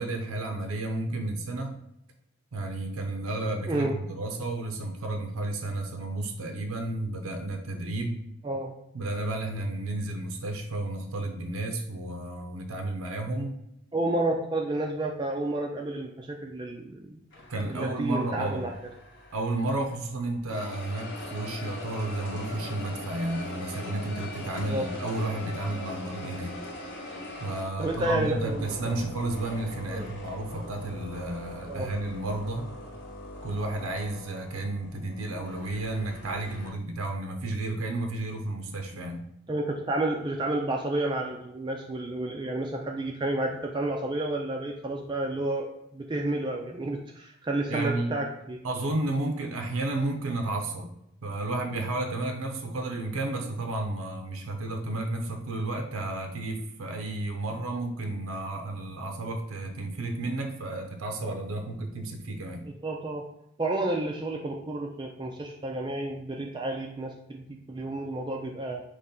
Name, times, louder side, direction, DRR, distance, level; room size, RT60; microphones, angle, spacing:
voice 1, 0.0-1.7 2.5-8.2 8.9-13.6 17.5-18.6 19.3-26.6 27.4-32.7 33.4-39.2 47.7-48.1 48.6-50.9 51.2-62.7, right 2 dB, 85° right, 4 dB, 0.6 m, -32 dB
voice 2, 3.7-4.0 8.4-8.7 13.9-17.2 17.7-18.7 24.7-24.9 27.8-28.9 29.9-30.1 31.7-31.9 39.5-48.7 62.8-63.2 63.6-68.8, right 2 dB, 20° right, 1 dB, 0.3 m, -30 dB
sound 1, 17.3-20.1 20.5-36.7, left 1 dB, 55° left, 0.9 m, -41 dB
4.2 x 3.0 x 3.7 m, 0.79 s
head